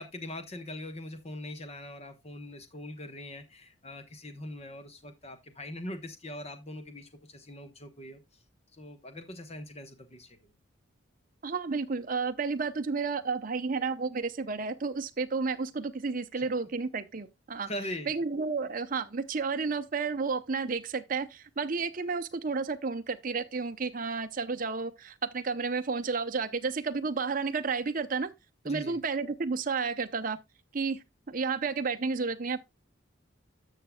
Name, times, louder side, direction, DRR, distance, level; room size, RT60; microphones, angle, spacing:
voice 1, 0.0-8.4 8.7-10.5 16.4-16.7 17.6-18.1 28.6-29.0, left 1 dB, 30° left, 1.1 m, -42 dB
voice 2, 11.4-17.7 18.1-28.3 28.6-30.4 30.7-32.6, right 4 dB, 40° right, 0.6 m, -31 dB
13.0 x 6.5 x 2.2 m
head